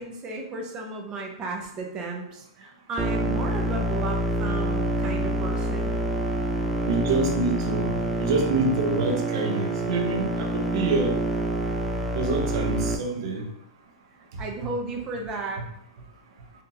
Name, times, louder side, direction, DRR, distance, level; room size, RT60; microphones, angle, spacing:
voice 1, 0.0-6.0 14.4-15.6, right 3 dB, 25° right, 1 dB, 0.7 m, -34 dB
sound 1, 3.0-13.0, right 1 dB, 5° right, 0.3 m, -27 dB
voice 2, 6.9-7.9 8.2-11.2 12.1-13.4, right 3 dB, 55° right, 1 dB, 0.8 m, -26 dB
3.8 x 2.7 x 2.8 m, 0.74 s
hypercardioid pair, 140°, 3 cm